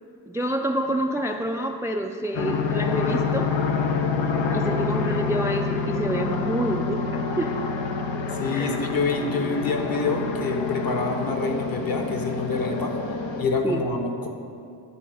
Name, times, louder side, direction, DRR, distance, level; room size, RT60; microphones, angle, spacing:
voice 1, 0.3-3.5 4.5-7.6 8.5-8.8 13.6-13.8, right 1 dB, 5° right, 4 dB, 0.3 m, -27 dB
sound 1, 2.3-13.5, left 4 dB, 85° left, 0.8 m, -27 dB
voice 2, 8.3-12.9 13.4-14.3, left 3 dB, 50° left, 4 dB, 1.2 m, -27 dB
10.5 x 3.8 x 6.2 m, 2.5 s
cardioid pair, 80°, 43 cm